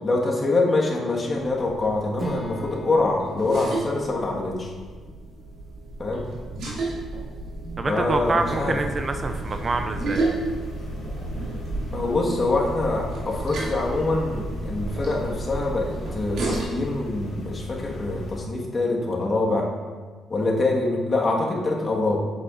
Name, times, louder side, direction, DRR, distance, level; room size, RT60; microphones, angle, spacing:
voice 1, 0.0-4.7 6.0-6.2 7.9-8.8 11.9-19.7 20.3-22.2, left 2 dB, 35° left, -2 dB, 1.5 m, -24 dB
sound 1, 1.4-16.6, right 2 dB, 75° right, 2.3 m, -33 dB
Acoustic guitar / Strum, 2.2-6.2, right 3 dB, 10° right, 1.1 m, -40 dB
voice 2, 7.8-10.2, right 3 dB, 35° right, 7 dB, 0.4 m, -26 dB
sound 2, 8.2-18.4, left 1 dB, 55° left, 1.9 m, -38 dB
8.1 x 7.8 x 2.5 m, 1.4 s
cardioid pair, 90°, 0 cm